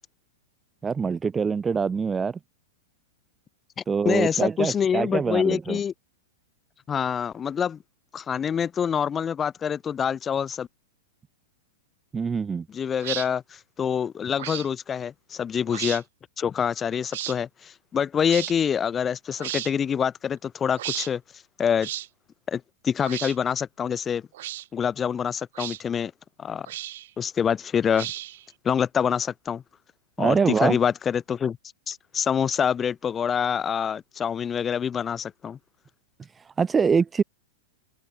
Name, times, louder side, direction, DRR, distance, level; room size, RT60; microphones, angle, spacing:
voice 1, 0.8-2.4 3.9-5.8 12.1-12.7 30.2-30.8 36.5-37.2, right 5 dB, 15° right, 0.3 m, -24 dB
voice 2, 3.8-5.9 6.9-7.8 8.1-10.7 12.7-16.0 16.4-21.2 21.6-21.9 22.5-24.2 24.7-26.1 26.4-26.7 27.2-28.1 28.6-29.6 30.2-31.6 31.9-35.6, left 7 dB, 20° left, 1.1 m, -26 dB
sound 1, 13.0-13.3 14.4-14.7 15.7-16.0 17.1-17.4 18.3-18.5 19.4-19.7 20.8-21.1 21.8-22.1 23.0-23.4 24.3-24.7 25.5-25.8 26.7-27.1 27.9-28.4, right 14 dB, 65° right, 0.8 m, -33 dB
open air
hypercardioid pair, 115°, 0 cm